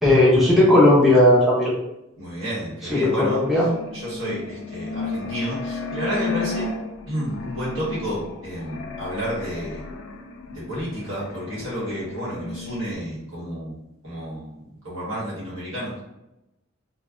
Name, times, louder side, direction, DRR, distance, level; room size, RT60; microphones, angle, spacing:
voice 1, 0.0-1.7 2.9-3.7, left 1 dB, ahead, -7 dB, 0.5 m, -16 dB
voice 2, 2.2-3.4 3.9-6.7 7.1-9.8 10.5-13.8 14.0-16.0, equal, 70° right, -7 dB, 1.3 m, -31 dB
sound 1, 3.0-12.9, left 3 dB, 80° left, 0.4 m, -34 dB
3.1 x 2.1 x 2.4 m, 0.90 s
head